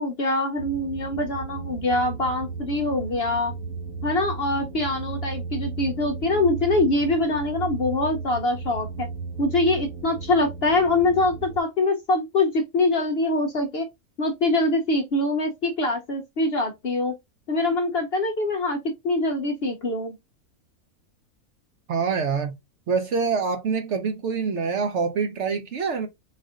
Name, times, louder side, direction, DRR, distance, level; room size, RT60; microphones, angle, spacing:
voice 1, 0.0-3.5 4.0-9.1 9.4-13.9 14.2-17.1 17.5-18.8 19.0-20.1, left 2 dB, 60° left, 0.7 m, -24 dB
sound 1, 0.6-11.6, right 4 dB, 80° right, 1.3 m, -35 dB
voice 2, 21.9-22.5 22.9-26.1, right 5 dB, 65° right, 0.8 m, -25 dB
4.1 x 2.5 x 3.6 m
omnidirectional pair, 1.6 m